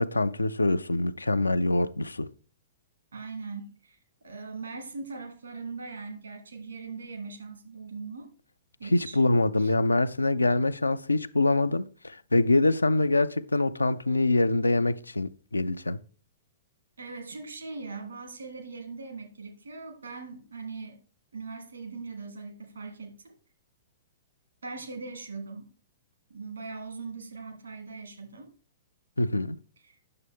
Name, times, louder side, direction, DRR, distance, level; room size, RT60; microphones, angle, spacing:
voice 1, 0.0-2.3 8.9-16.0 29.2-29.6, left 2 dB, 85° left, 0.4 m, -25 dB
voice 2, 3.1-8.3 8.8-9.2 9.6-9.7 17.0-21.0 21.3-23.4 24.6-25.7 26.3-28.5 29.8-30.0, right 4 dB, 75° right, 1.9 m, -40 dB
9.7 x 6.6 x 3.5 m
figure-of-eight pair, 105°, 0 cm